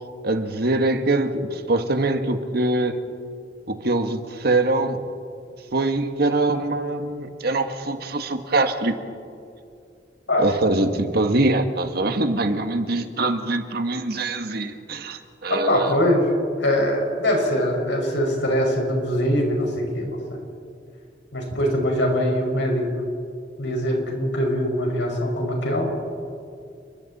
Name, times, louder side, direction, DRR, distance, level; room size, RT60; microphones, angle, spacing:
voice 1, 0.2-3.0 3.7-5.0 5.7-8.9 10.3-16.0, right 2 dB, 60° right, 7 dB, 1.6 m, -23 dB
voice 2, 15.5-16.2 16.6-20.4 21.3-22.8 23.6-25.9, equal, 80° left, 0 dB, 5.6 m, -22 dB
29.5 x 21.5 x 4.2 m, 2.4 s
head